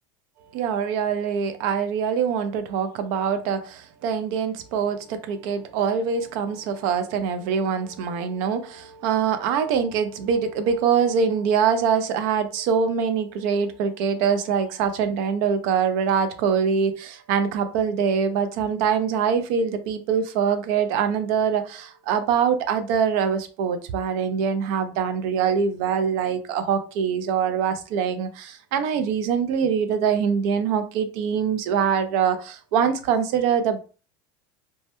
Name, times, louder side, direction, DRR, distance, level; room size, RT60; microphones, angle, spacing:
voice 1, 0.5-33.8, right 7 dB, 65° right, 0.4 m, -24 dB
2.2 x 2.0 x 2.8 m
cardioid pair, 160°, 12 cm